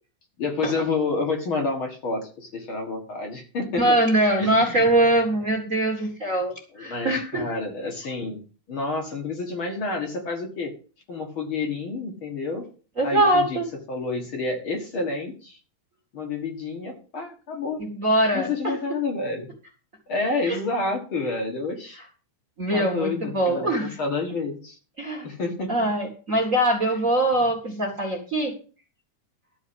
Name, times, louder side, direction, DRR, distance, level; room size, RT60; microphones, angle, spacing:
voice 1, 0.4-4.0 4.4-4.8 6.7-8.4 8.7-10.7 11.1-12.7 13.0-13.6 13.9-15.6 16.1-17.8 18.3-19.5 20.1-22.0 22.7-24.8 25.2-25.7 26.9-27.0, left 3 dB, 45° left, 2 dB, 2.3 m, -29 dB
voice 2, 3.8-7.5 13.0-13.7 17.8-18.5 20.5-20.6 22.6-24.0 25.0-25.3 25.7-28.5, right 1 dB, 30° right, 2 dB, 1.8 m, -22 dB
12.5 x 4.7 x 7.9 m, 0.38 s
omnidirectional pair, 3.4 m